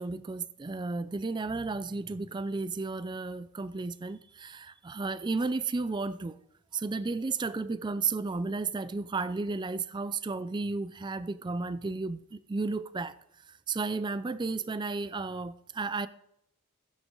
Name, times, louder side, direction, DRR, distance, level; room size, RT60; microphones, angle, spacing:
voice 1, 0.0-6.4 6.7-13.2 13.5-16.1, right 3 dB, 20° right, 0.4 m, -33 dB
15.0 x 9.2 x 3.8 m
head